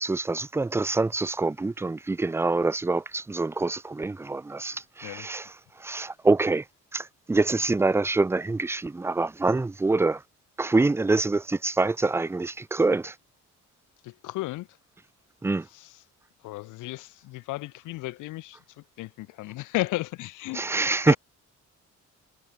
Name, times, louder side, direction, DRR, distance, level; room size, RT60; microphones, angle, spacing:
voice 1, 0.0-5.5 5.8-6.6 6.9-10.2 10.6-13.1 15.4-15.6 20.5-21.2, right 3 dB, 10° right, 0.4 m, -25 dB
voice 2, 14.0-14.7 15.7-15.9 16.4-18.6 19.0-20.6 20.9-21.2, left 19 dB, 85° left, 0.6 m, -34 dB
cardioid pair, 90°, 30 cm